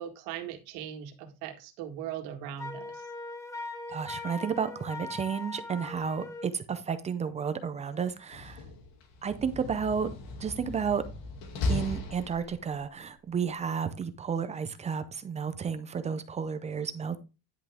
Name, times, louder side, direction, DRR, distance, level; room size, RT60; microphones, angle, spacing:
voice 1, 0.0-3.0 17.1-17.2, right 10 dB, 90° right, 1.8 m, -39 dB
Wind instrument woodwind instrument, 2.6-6.5, left 2 dB, 5° left, 0.8 m, -40 dB
voice 2, 3.9-8.6 9.2-10.1 10.4-11.0 11.7-17.2, right 6 dB, 15° right, 0.4 m, -32 dB
Slam, 8.2-12.9, left 2 dB, 80° left, 2.5 m, -36 dB
10.0 x 5.8 x 3.5 m
cardioid pair, 165°, 41 cm